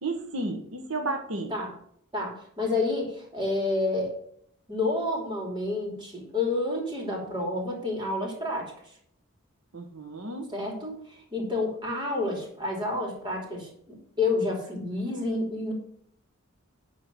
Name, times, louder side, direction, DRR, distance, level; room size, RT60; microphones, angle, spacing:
voice 1, 0.0-1.5 9.7-10.5, right 2 dB, 85° right, 4 dB, 1.4 m, -32 dB
voice 2, 2.1-4.2 4.7-8.7 10.5-15.7, left 2 dB, 20° right, 0 dB, 2.9 m, -29 dB
11.0 x 3.9 x 7.5 m, 0.67 s
head